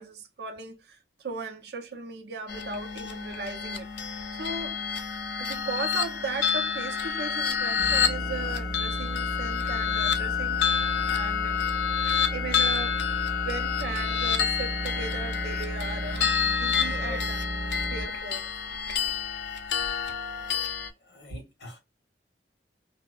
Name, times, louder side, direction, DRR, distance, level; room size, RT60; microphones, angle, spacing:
voice 1, 0.0-3.9 4.3-4.8 5.4-10.7 11.1-11.6 12.3-13.0 13.4-17.4 17.8-18.5, right 4 dB, 65° right, 0.6 m, -37 dB
sound 1, 2.5-20.9, left 7 dB, 85° left, 0.5 m, -29 dB
sound 2, 7.8-18.0, right 1 dB, 5° right, 0.5 m, -34 dB
voice 2, 21.0-21.8, left 2 dB, 65° left, 1.2 m, -42 dB
2.7 x 2.1 x 2.3 m
head